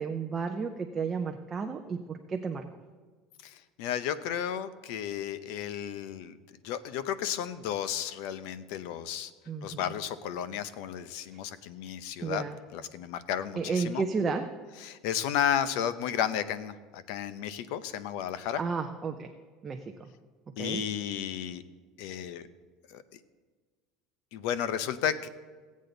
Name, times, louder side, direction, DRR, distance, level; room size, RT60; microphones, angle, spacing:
voice 1, 0.0-2.6 9.5-9.9 12.2-12.6 13.6-14.5 18.6-19.3 19.6-20.1 20.6-20.8, right 5 dB, 20° right, 4 dB, 0.5 m, -32 dB
voice 2, 3.4-6.4 6.6-9.3 9.6-12.4 12.7-14.0 14.8-18.6 20.6-21.6 22.0-22.5 22.9-23.0 24.3-25.3, left 9 dB, 70° left, 13 dB, 0.7 m, -33 dB
16.5 x 8.4 x 3.9 m, 1.5 s
cardioid pair, 165°, 0 cm